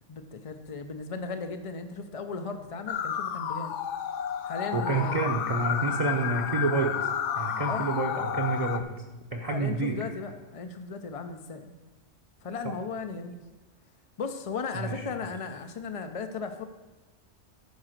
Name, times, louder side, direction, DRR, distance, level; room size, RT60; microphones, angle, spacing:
voice 1, 0.1-3.7 4.4-5.4 7.6-7.8 9.4-11.7 12.4-13.4 14.2-16.7, left 4 dB, 45° left, 6 dB, 0.4 m, -36 dB
sound 1, 2.9-8.8, left 9 dB, 70° left, 0.9 m, -31 dB
voice 2, 4.7-6.9 7.4-8.8 9.3-10.0 14.7-15.0, right 3 dB, 35° right, 2 dB, 0.8 m, -28 dB
10.5 x 4.9 x 6.5 m, 1.1 s
omnidirectional pair, 1.3 m